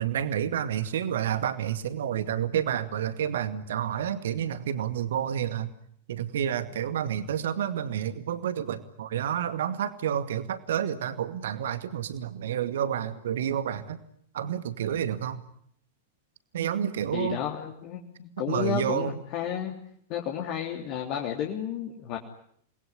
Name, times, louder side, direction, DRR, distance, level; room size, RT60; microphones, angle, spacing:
voice 1, 0.0-5.7 6.1-14.0 14.3-15.4 16.5-17.4 18.5-19.1, right 9 dB, 60° right, 11 dB, 2.2 m, -29 dB
voice 2, 17.1-19.7 20.1-22.2, left 9 dB, 40° left, 1 dB, 3.1 m, -32 dB
28.5 x 21.0 x 9.8 m, 0.68 s
figure-of-eight pair, 95°, 0 cm